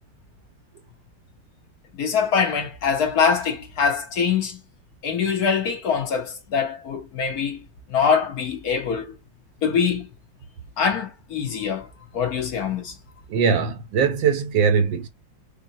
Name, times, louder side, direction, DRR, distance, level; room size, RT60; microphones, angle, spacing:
voice 1, 1.9-4.6 5.0-9.2 9.6-10.1 10.8-11.9 12.1-12.9, left 6 dB, 60° left, 1.3 m, -23 dB
voice 2, 13.3-15.1, right 6 dB, 80° right, 1.5 m, -21 dB
5.2 x 2.2 x 2.7 m
omnidirectional pair, 2.0 m